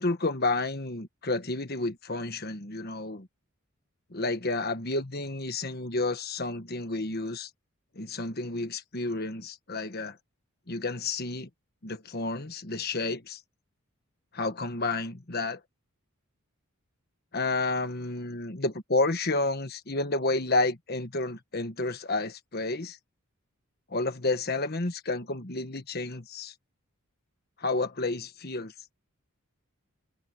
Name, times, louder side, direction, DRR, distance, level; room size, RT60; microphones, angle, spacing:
voice 1, 0.0-3.3 4.1-7.5 8.0-10.2 10.7-11.5 11.8-13.4 14.3-15.6 17.3-23.0 23.9-26.5 27.6-28.7, left 2 dB, 45° left, 1.5 m, -30 dB
head